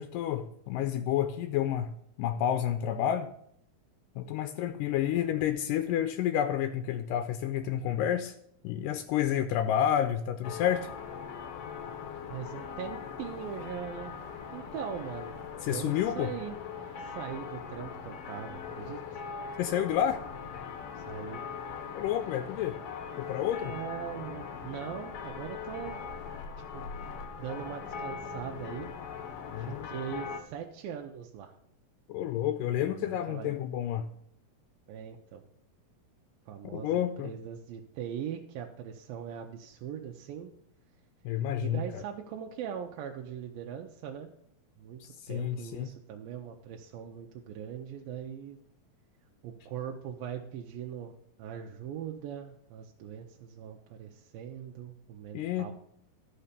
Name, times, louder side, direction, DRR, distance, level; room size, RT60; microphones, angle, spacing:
voice 1, 0.0-1.9 2.2-3.3 4.2-8.4 8.6-10.9 15.6-16.3 19.6-20.2 22.0-22.8 23.2-23.7 29.5-29.9 32.1-34.1 36.7-37.3 41.3-42.0 45.0-45.9 55.3-55.7, left 10 dB, 80° left, 9 dB, 2.1 m, -30 dB
sound 1, 10.4-30.4, left 6 dB, 60° left, 1.6 m, -41 dB
voice 2, 12.3-14.1 14.5-15.4 15.7-16.6 17.0-19.2 21.0-21.5 23.6-26.0 26.7-26.9 27.4-28.9 29.6-31.6 32.7-33.6 34.9-35.4 36.5-40.5 41.6-44.3 44.8-48.6 49.4-51.1 51.4-55.7, right 8 dB, 85° right, 2 dB, 2.6 m, -41 dB
13.0 x 5.7 x 6.7 m, 0.69 s
omnidirectional pair, 4.1 m